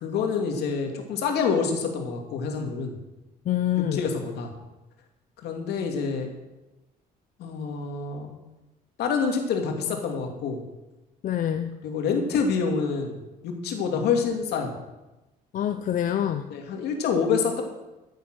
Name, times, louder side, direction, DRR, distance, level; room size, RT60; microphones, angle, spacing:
voice 1, 0.0-2.9 3.9-4.5 5.4-6.3 7.4-8.3 9.0-10.6 11.8-13.2 13.4-14.7 16.5-17.6, left 5 dB, 75° left, 3 dB, 2.6 m, -27 dB
voice 2, 3.5-4.0 11.2-11.8 15.5-16.5, left 10 dB, 50° left, 8 dB, 0.7 m, -26 dB
14.0 x 8.1 x 6.3 m, 1.0 s
cardioid pair, 110°, 17 cm